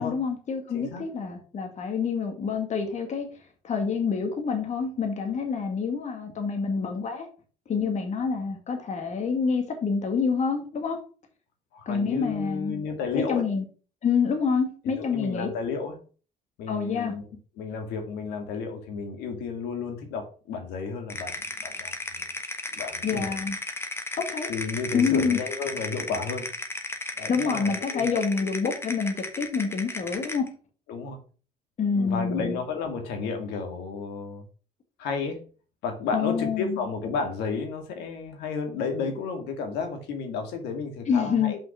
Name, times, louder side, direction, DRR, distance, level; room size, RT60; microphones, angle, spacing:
voice 1, 0.0-3.3 3.6-7.3 7.7-11.0 11.9-12.8 13.1-13.6 14.0-15.5 16.7-17.1 23.0-23.6 24.2-24.5 24.9-25.4 27.3-30.5 31.8-32.6 36.1-36.8 41.1-41.5, left 5 dB, 45° left, 2.1 m, -27 dB
voice 2, 0.7-1.0 11.7-13.4 15.0-16.0 16.6-17.2 17.6-21.3 21.6-22.3 22.7-23.4 24.5-26.5 27.2-28.2 30.9-31.2 31.8-34.4 35.0-35.4 35.8-41.6, left 5 dB, 90° left, 2.1 m, -32 dB
sound 1, 21.1-30.5, left 2 dB, 15° left, 1.2 m, -35 dB
5.8 x 5.5 x 5.8 m
cardioid pair, 110°, 17 cm